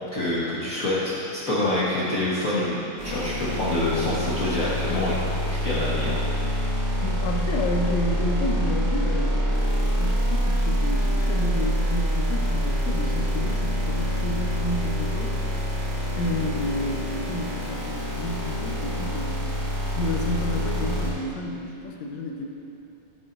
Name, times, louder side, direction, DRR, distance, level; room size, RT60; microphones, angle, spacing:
voice 1, 0.1-5.2 5.5-6.2, left 1 dB, 45° left, -9 dB, 1.1 m, -26 dB
sound 1, 3.0-21.1, equal, 40° right, 2.8 m, -26 dB
voice 2, 7.0-15.4 16.2-19.5 20.0-22.5, left 1 dB, 70° left, 1 dB, 2.1 m, -30 dB
15.0 x 9.5 x 2.6 m, 2.9 s
omnidirectional pair, 3.3 m